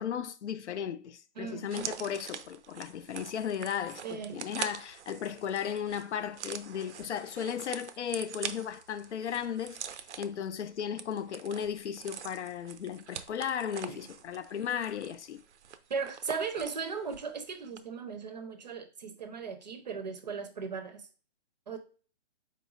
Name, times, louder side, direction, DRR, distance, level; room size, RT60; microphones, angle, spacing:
voice 1, 0.0-9.8 10.2-15.4, left 8 dB, 85° left, 0.5 m, -35 dB
voice 2, 1.4-2.1 4.0-4.5 13.9-14.0 15.9-21.0 21.7-21.8, right 5 dB, 40° right, 0.5 m, -37 dB
sound 1, 1.7-17.4 17.6-17.8, right 8 dB, 90° right, 0.5 m, -44 dB
4.2 x 3.0 x 2.4 m
hypercardioid pair, 160°, 34 cm